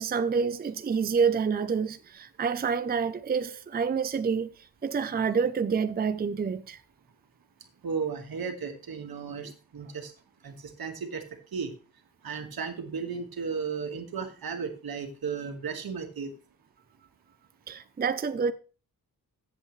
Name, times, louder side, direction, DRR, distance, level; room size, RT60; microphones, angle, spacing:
voice 1, 0.0-4.5 4.8-6.8 9.4-9.5 17.7-18.5, right 6 dB, 25° right, 0.5 m, -28 dB
voice 2, 7.8-10.1 10.4-11.2 11.5-11.7 12.2-16.3, right 5 dB, 85° right, 1.8 m, -34 dB
14.5 x 8.0 x 3.2 m
wide cardioid pair, 160°, 35 cm